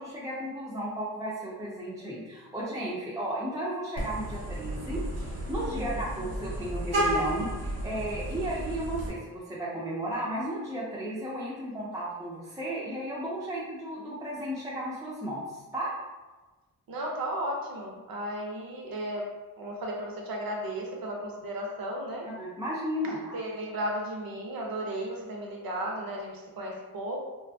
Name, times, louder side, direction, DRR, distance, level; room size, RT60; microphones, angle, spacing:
voice 1, 0.0-15.9 22.2-23.2, right 1 dB, 10° right, -6 dB, 0.3 m, -34 dB
Vehicle horn car horn honking, 3.9-9.1, right 1 dB, 85° right, 1.1 m, -32 dB
voice 2, 16.9-19.3 19.6-22.3 23.2-27.2, right 1 dB, 65° right, 0 dB, 0.6 m, -34 dB
2.5 x 2.3 x 2.5 m, 1.2 s
wide cardioid pair, 135°, 38 cm